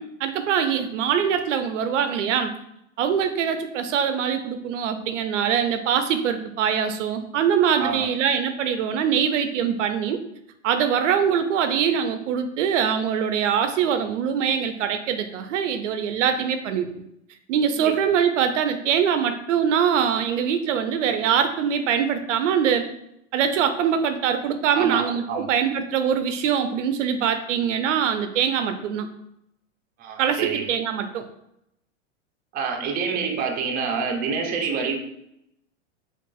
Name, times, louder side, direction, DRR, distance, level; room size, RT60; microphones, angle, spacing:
voice 1, 0.0-2.5 3.0-10.2 10.6-17.0 17.5-22.9 23.3-29.1 30.2-31.3, right 8 dB, 75° right, 8 dB, 0.5 m, -23 dB
voice 2, 24.7-25.5 30.0-30.7 32.5-35.0, right 5 dB, 25° right, 2 dB, 0.5 m, -27 dB
4.5 x 2.4 x 2.3 m, 0.78 s
hypercardioid pair, 110°, 38 cm